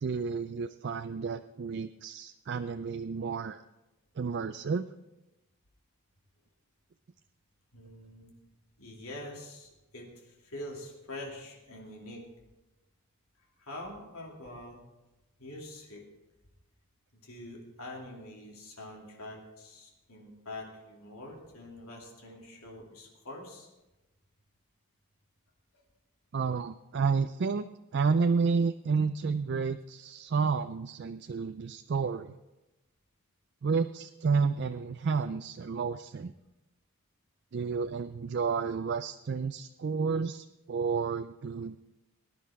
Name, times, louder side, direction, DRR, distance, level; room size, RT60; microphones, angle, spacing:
voice 1, 0.0-3.6 4.2-4.9 26.3-27.6 27.9-32.3 33.6-36.3 37.5-41.8, right 5 dB, 50° right, 10 dB, 0.4 m, -30 dB
voice 2, 7.7-8.3 8.8-12.2 13.6-14.8 15.4-16.1 17.1-23.7, left 1 dB, 75° left, -1 dB, 2.8 m, -45 dB
19.5 x 10.5 x 3.6 m, 1.0 s
head